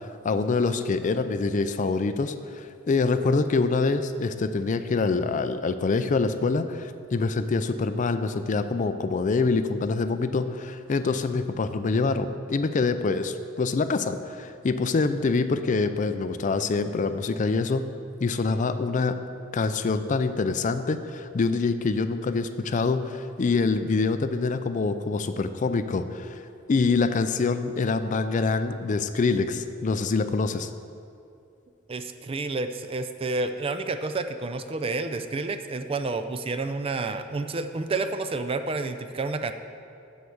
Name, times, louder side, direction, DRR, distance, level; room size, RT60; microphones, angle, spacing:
voice 1, 0.2-17.8 18.2-19.2 19.5-26.4 26.7-30.7, left 4 dB, 40° left, 10 dB, 0.4 m, -25 dB
voice 2, 31.9-39.5, right 3 dB, 30° right, 9 dB, 0.4 m, -30 dB
7.9 x 6.4 x 7.0 m, 2.5 s
head